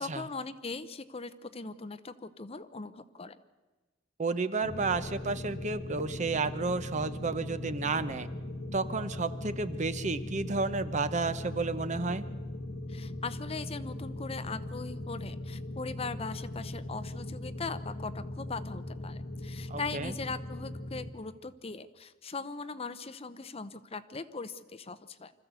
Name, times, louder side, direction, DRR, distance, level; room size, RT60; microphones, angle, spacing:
voice 1, 0.0-3.4 12.9-25.3, left 4 dB, 30° left, 11 dB, 0.8 m, -40 dB
voice 2, 4.2-8.3 8.7-12.2 19.7-20.1, right 3 dB, 40° right, 12 dB, 0.8 m, -31 dB
sound 1, 4.6-21.1, left 1 dB, 60° left, 1.4 m, -39 dB
25.0 x 14.0 x 8.2 m, 1.2 s
head